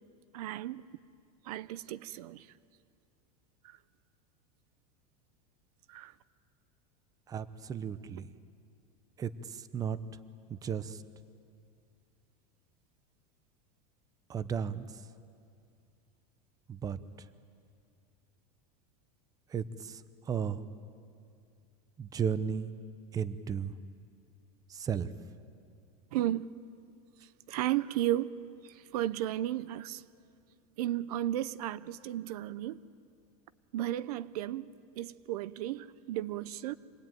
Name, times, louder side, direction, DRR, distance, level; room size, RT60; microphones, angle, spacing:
voice 1, 0.3-0.8 1.4-2.5 3.6-3.8 5.9-6.1 26.1-26.5 27.5-28.3 28.6-30.0 30.8-32.8 33.7-36.8, right 13 dB, 80° right, 0.7 m, -34 dB
voice 2, 7.3-8.3 9.2-10.0 10.5-11.0 14.3-14.9 16.7-17.0 19.5-20.0 20.3-20.6 22.0-22.7 23.1-23.7 24.7-25.1, right 7 dB, 20° right, 0.7 m, -34 dB
26.0 x 20.5 x 9.2 m
supercardioid pair, 150°, 19 cm